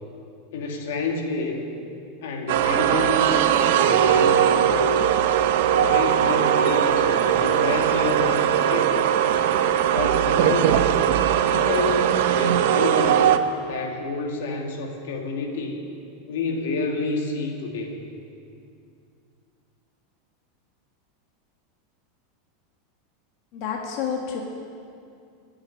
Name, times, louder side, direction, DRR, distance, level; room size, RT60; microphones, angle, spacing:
voice 1, 0.5-1.6 2.2-5.2 5.7-9.1 9.9-11.0 11.4-13.3 13.6-15.8 16.3-18.0, left 3 dB, 75° left, 2 dB, 2.1 m, -29 dB
sound 1, 2.5-13.4, right 10 dB, 65° right, 0.7 m, -20 dB
voice 2, 23.5-24.4, left 7 dB, 45° left, 0 dB, 1.6 m, -29 dB
16.0 x 7.4 x 9.7 m, 2.5 s
supercardioid pair, 160°, 0 cm